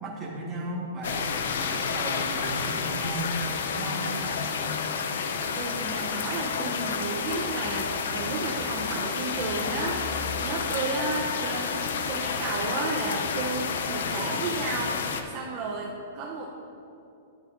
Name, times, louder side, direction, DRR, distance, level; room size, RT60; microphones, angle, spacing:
voice 1, 0.0-3.4 3.6-4.1, right 1 dB, 15° right, -4 dB, 1.5 m, -35 dB
sound 1, 1.0-15.2, left 5 dB, 75° left, 0.6 m, -30 dB
voice 2, 5.5-11.8 12.1-16.5, right 3 dB, 35° right, -3 dB, 0.7 m, -33 dB
12.0 x 8.0 x 2.7 m, 2.7 s
hypercardioid pair, 160°, 0 cm